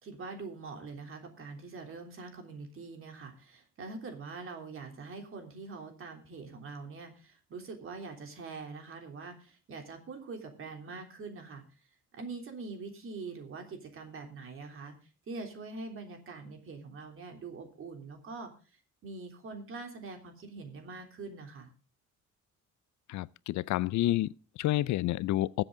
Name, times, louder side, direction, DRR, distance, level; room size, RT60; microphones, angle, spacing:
voice 1, 0.0-11.6 12.1-14.9 15.3-18.5 19.0-21.7, right 4 dB, 45° right, 3.3 m, -44 dB
voice 2, 23.1-25.6, left 15 dB, 75° left, 0.5 m, -29 dB
20.5 x 7.8 x 3.8 m
cardioid pair, 155°, 29 cm